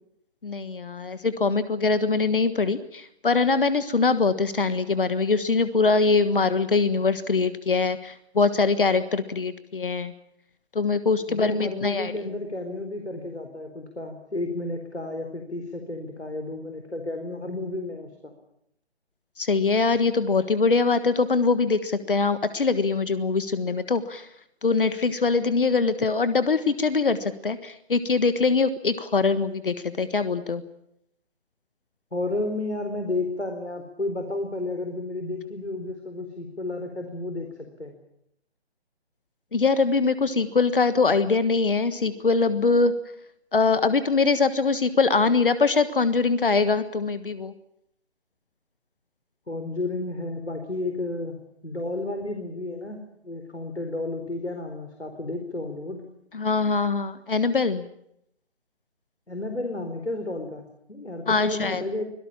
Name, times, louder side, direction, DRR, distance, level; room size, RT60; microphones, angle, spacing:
voice 1, 0.4-10.1 10.7-12.1 19.4-24.3 24.6-30.6 39.5-42.9 43.5-47.5 56.3-57.8 61.3-61.8, left 4 dB, 55° left, 13 dB, 1.5 m, -23 dB
voice 2, 11.3-18.3 32.1-37.5 37.8-37.9 49.5-56.0 59.3-62.0, left 2 dB, 85° left, 5 dB, 4.4 m, -32 dB
24.5 x 18.5 x 8.7 m, 0.77 s
figure-of-eight pair, 150°, 33 cm